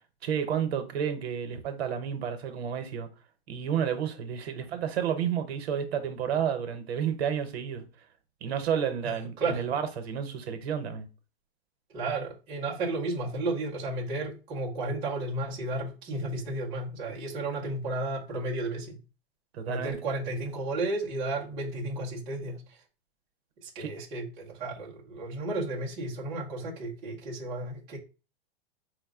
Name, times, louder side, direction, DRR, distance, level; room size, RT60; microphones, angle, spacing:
voice 1, 0.2-3.1 3.5-7.8 8.4-11.1 19.5-20.0 23.8-23.9, right 8 dB, 80° right, 0.8 m, -31 dB
voice 2, 9.0-9.6 11.9-19.0 19.7-22.8 23.6-28.0, right 2 dB, 15° right, 0.5 m, -33 dB
4.7 x 2.1 x 3.5 m
supercardioid pair, 170°, 31 cm